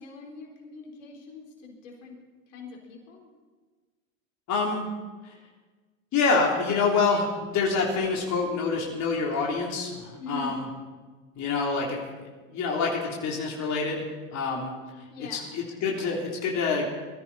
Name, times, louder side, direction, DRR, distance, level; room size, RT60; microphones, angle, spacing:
voice 1, 0.0-2.2 2.5-3.3 10.2-10.6 15.1-15.5, left 2 dB, 70° left, 0 dB, 4.4 m, -42 dB
voice 2, 4.5-4.9 5.2-5.3 6.1-10.7 11.4-12.0 12.5-14.0 14.3-15.0 15.3-16.9, left 4 dB, 45° left, -2 dB, 3.8 m, -27 dB
23.0 x 14.5 x 4.3 m, 1.3 s
hypercardioid pair, 90°, 39 cm